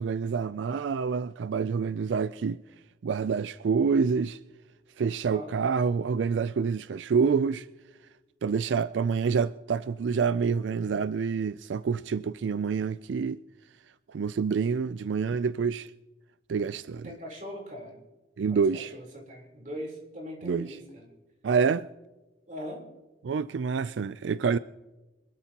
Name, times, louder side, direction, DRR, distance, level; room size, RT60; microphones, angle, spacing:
voice 1, 0.0-2.6 3.0-4.4 5.0-7.7 8.4-13.4 14.1-15.9 16.5-17.1 18.4-18.9 20.4-20.8 21.4-21.9 23.2-24.6, right 5 dB, 90° right, 0.4 m, -27 dB
voice 2, 17.0-18.0 18.5-21.1 22.5-22.9, equal, 45° right, 3.7 m, -41 dB
25.0 x 12.5 x 2.9 m
head